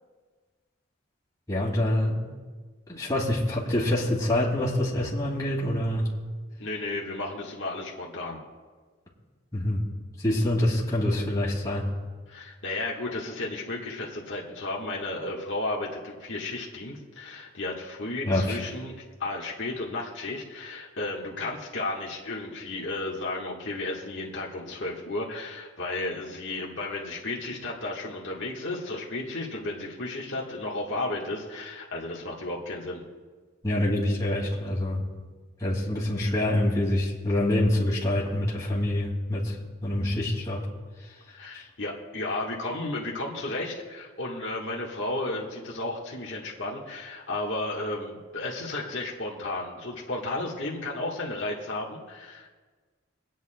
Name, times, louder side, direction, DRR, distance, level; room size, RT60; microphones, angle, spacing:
voice 1, 1.5-2.2 2.9-6.1 9.5-9.8 10.2-11.9 18.2-18.6 24.6-24.7 33.6-35.0 35.6-39.5 39.8-40.6 41.5-41.6, left 1 dB, 15° left, -6 dB, 2.3 m, -26 dB
voice 2, 6.6-8.4 12.3-18.9 19.2-33.0 41.3-52.5, left 2 dB, 65° left, -3 dB, 1.4 m, -33 dB
26.0 x 9.3 x 2.2 m, 1.4 s
head